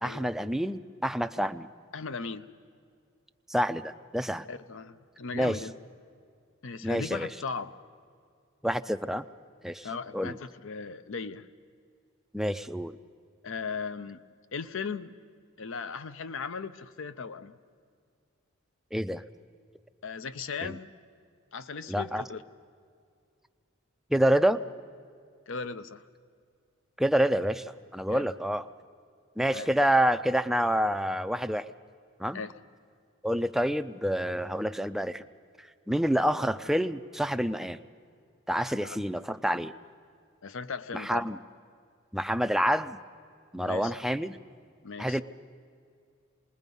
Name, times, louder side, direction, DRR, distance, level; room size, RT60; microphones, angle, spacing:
voice 1, 0.0-1.7 3.5-4.5 5.3-5.6 6.8-7.3 8.6-9.3 9.6-9.9 10.1-10.4 12.3-13.0 18.9-19.2 20.6-20.8 21.9-22.2 24.1-24.6 27.0-28.6 29.4-31.7 32.2-32.4 33.2-35.2 35.9-37.8 38.5-39.7 40.9-41.4 42.1-43.0 43.5-44.4 45.0-45.2, equal, ahead, 10 dB, 0.4 m, -27 dB
voice 2, 1.9-2.5 4.5-5.7 6.6-7.8 9.8-11.5 13.4-14.2 14.5-15.1 15.6-17.6 20.0-20.9 21.5-22.4 25.5-26.0 28.1-28.3 29.5-29.7 32.3-32.5 38.6-39.0 40.4-41.3 43.7-44.0 44.8-45.2, left 5 dB, 70° left, 13 dB, 0.7 m, -37 dB
27.5 x 20.5 x 5.4 m, 2.3 s
head